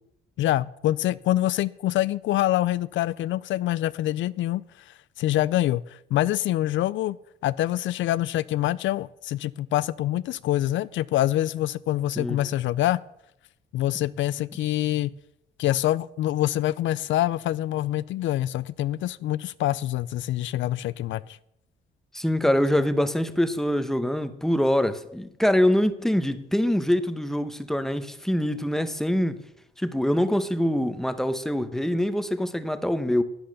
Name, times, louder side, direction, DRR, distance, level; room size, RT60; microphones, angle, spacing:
voice 1, 0.4-7.2 7.4-13.0 13.7-15.1 15.6-21.4, left 14 dB, 75° left, 0.4 m, -25 dB
voice 2, 22.1-29.4 29.8-33.2, left 1 dB, ahead, 1.0 m, -24 dB
11.5 x 9.1 x 6.6 m
cardioid pair, 90°, 20 cm